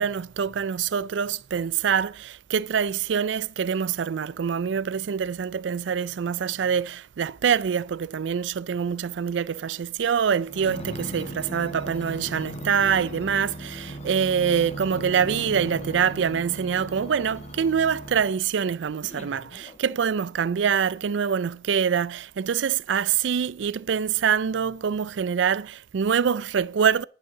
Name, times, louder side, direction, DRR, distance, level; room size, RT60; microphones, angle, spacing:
voice 1, 0.0-27.0, right 7 dB, 75° right, 0.4 m, -25 dB
sound 1, 10.5-18.4 19.0-20.3 20.9-21.0, right 1 dB, 35° left, 1.1 m, -38 dB
10.5 x 7.2 x 6.0 m
head